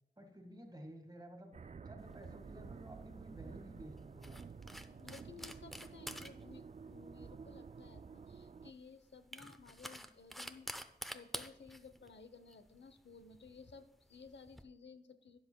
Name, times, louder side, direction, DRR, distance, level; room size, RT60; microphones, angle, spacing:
voice 1, 0.2-4.4, right 1 dB, 20° right, 4 dB, 1.7 m, -53 dB
sound 1, 1.5-8.7, right 5 dB, 40° right, 0.4 m, -51 dB
sound 2, 2.0-14.6, equal, ahead, 0.6 m, -51 dB
voice 2, 4.7-10.7 11.1-15.4, left 5 dB, 85° left, 10 dB, 0.7 m, -56 dB
12.5 x 10.0 x 2.2 m, 0.91 s
wide cardioid pair, 70°, 18 cm